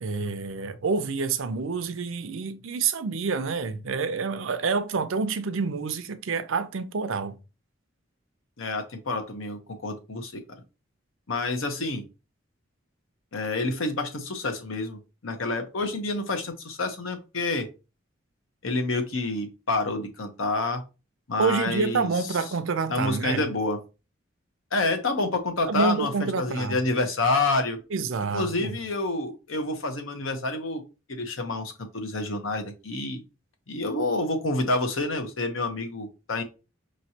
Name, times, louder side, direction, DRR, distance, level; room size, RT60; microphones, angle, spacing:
voice 1, 0.0-7.4 21.4-23.4 25.7-26.8 27.9-28.8, right 5 dB, 85° right, 0.5 m, -28 dB
voice 2, 8.6-10.4 11.3-12.0 13.3-17.7 18.6-20.8 21.3-22.1 22.9-23.8 24.7-27.8 28.3-30.8 31.1-33.2 33.7-36.4, left 2 dB, 90° left, 1.0 m, -28 dB
5.1 x 3.1 x 2.8 m
head